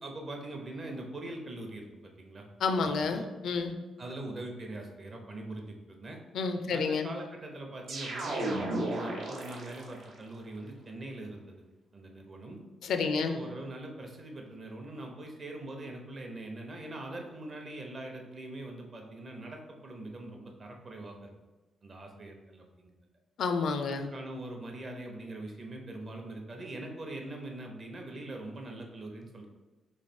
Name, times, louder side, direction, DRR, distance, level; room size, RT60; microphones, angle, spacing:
voice 1, 0.0-2.4 2.8-3.2 4.0-6.2 6.7-11.6 11.9-12.6 13.0-21.3 21.8-22.9 23.9-29.5, right 2 dB, 35° right, 2 dB, 0.7 m, -42 dB
voice 2, 2.6-3.8 6.3-7.1 12.8-13.4 23.4-24.1, left 4 dB, 70° left, 7 dB, 0.4 m, -29 dB
sound 1, 7.9-10.1, right 1 dB, 80° right, 0.9 m, -34 dB
3.2 x 3.0 x 4.2 m, 1.2 s
cardioid pair, 130°, 0 cm